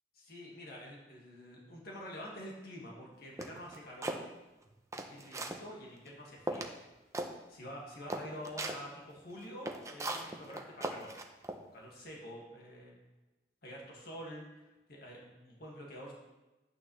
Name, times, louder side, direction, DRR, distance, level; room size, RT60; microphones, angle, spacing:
voice 1, 0.2-4.2 5.1-6.7 7.3-11.1 11.7-13.0 13.6-16.1, equal, 60° left, -2 dB, 2.1 m, -47 dB
sound 1, 3.4-4.2 4.7-5.6 6.1-6.2 6.5-6.8 7.1-7.3 7.7-7.8 8.1-8.8 9.4-11.6, right 2 dB, 15° right, 0.7 m, -38 dB
11.0 x 8.9 x 3.3 m, 1.1 s
head